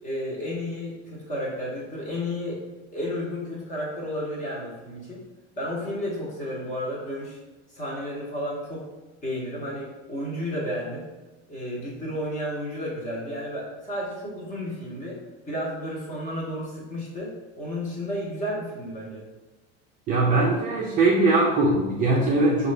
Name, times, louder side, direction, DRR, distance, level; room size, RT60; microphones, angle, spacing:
voice 1, 0.0-2.6 2.9-5.2 5.6-7.4 7.7-8.9 9.2-11.1 11.5-15.2 15.5-19.3, equal, 20° left, -4 dB, 1.0 m, -32 dB
voice 2, 20.1-22.7, right 2 dB, 25° right, -5 dB, 0.5 m, -21 dB
5.0 x 2.5 x 3.2 m, 1.1 s
supercardioid pair, 160°, 33 cm